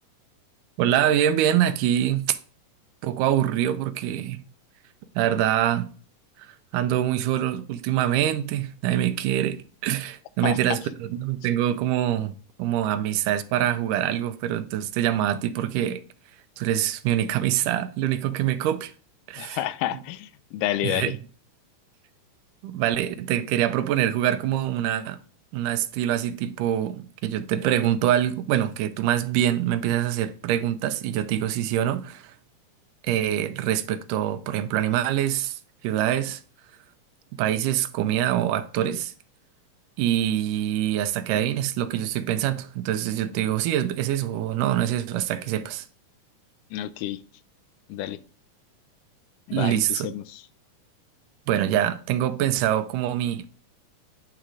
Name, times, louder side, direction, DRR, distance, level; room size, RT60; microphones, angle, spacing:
voice 1, 0.8-2.3 3.0-4.4 5.2-5.9 6.7-16.0 16.6-18.9 19.3-19.7 19.9-20.0 20.8-21.2 22.6-25.2 25.5-32.3 33.0-35.6 35.8-36.4 37.4-39.1 40.0-45.9 49.5-50.1 51.5-53.5, right 11 dB, 85° right, 2.2 m, -25 dB
voice 2, 19.4-21.1 46.7-47.2 47.9-48.2 49.5-50.4, left 13 dB, 85° left, 2.1 m, -29 dB
9.3 x 3.8 x 4.7 m
omnidirectional pair, 3.8 m